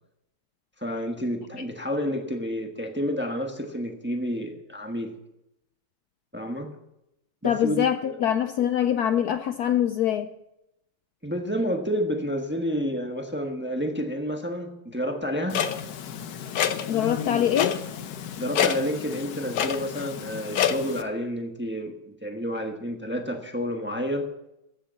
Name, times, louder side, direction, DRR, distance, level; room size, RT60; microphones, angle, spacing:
voice 1, 0.8-5.1 6.3-6.7 7.4-8.2 11.2-15.7 18.4-24.3, equal, 5° right, 0.9 m, -30 dB
voice 2, 7.4-10.3 16.9-17.8, left 10 dB, 80° left, 0.8 m, -24 dB
Clock, 15.5-21.0, left 8 dB, 60° left, 1.1 m, -29 dB
14.5 x 6.8 x 7.5 m
omnidirectional pair, 2.2 m